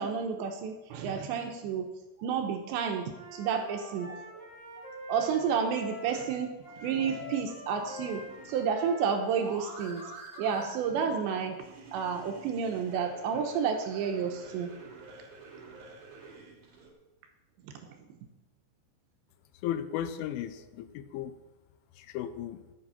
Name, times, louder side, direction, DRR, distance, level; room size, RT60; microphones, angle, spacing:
voice 1, 0.0-1.9 2.2-4.4 5.0-10.1 10.4-11.7 11.9-14.7 17.6-18.2, right 6 dB, 75° right, 4 dB, 2.8 m, -31 dB
Wind instrument woodwind instrument, 3.1-10.1, left 2 dB, 30° left, 5.5 m, -45 dB
sound 1, 7.7-16.9, right 3 dB, 50° right, 2.1 m, -48 dB
voice 2, 19.6-21.3 22.0-22.6, left 10 dB, 85° left, 11 dB, 3.1 m, -35 dB
13.5 x 8.3 x 5.6 m, 1.1 s
omnidirectional pair, 5.7 m